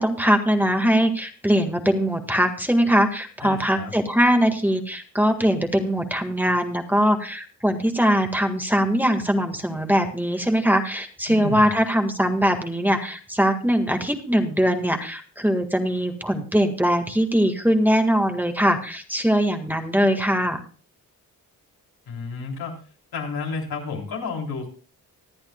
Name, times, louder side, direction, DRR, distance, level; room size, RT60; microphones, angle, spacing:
voice 1, 0.0-20.6, equal, 5° right, 5 dB, 1.7 m, -21 dB
voice 2, 3.4-3.9 11.3-11.7 22.1-22.8 23.1-24.7, left 4 dB, 85° left, -1 dB, 3.5 m, -31 dB
25.0 x 8.8 x 2.3 m, 0.37 s
cardioid pair, 80°, 36 cm